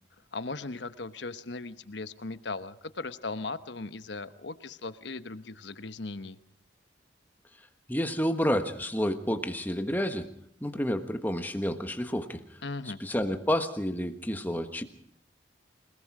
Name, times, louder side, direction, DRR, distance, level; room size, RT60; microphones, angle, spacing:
voice 1, 0.3-6.4 12.6-13.0, left 3 dB, 75° left, 12 dB, 1.1 m, -38 dB
voice 2, 7.9-10.3 10.6-12.4 13.0-14.8, equal, 10° left, 7 dB, 1.4 m, -29 dB
28.0 x 19.5 x 4.9 m, 0.65 s
head